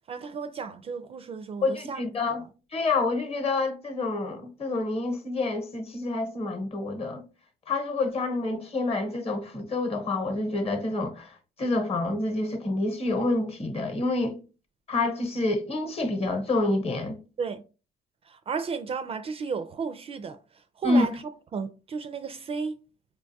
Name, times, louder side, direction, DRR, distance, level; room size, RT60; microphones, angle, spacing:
voice 1, 0.1-2.0 17.4-17.6 18.2-21.2 21.5-22.7, right 5 dB, 35° right, 0.4 m, -33 dB
voice 2, 1.6-2.4 2.7-7.2 7.7-14.4 14.9-17.2 20.8-21.1, left 2 dB, 35° left, 0.9 m, -28 dB
5.0 x 2.2 x 2.7 m
cardioid pair, 110°, 17 cm